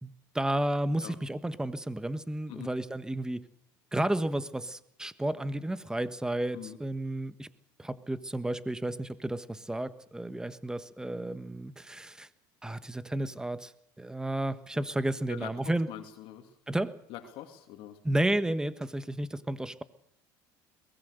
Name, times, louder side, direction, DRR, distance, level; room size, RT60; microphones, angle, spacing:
voice 1, 0.0-3.4 3.9-7.5 7.8-12.3 12.6-13.7 14.0-15.9 16.7-16.9 18.0-19.8, right 1 dB, 5° right, 13 dB, 1.3 m, -32 dB
voice 2, 15.9-16.5 17.1-18.0, left 12 dB, 65° left, 4 dB, 2.7 m, -43 dB
22.5 x 20.0 x 6.7 m, 0.71 s
supercardioid pair, 95°, 10 cm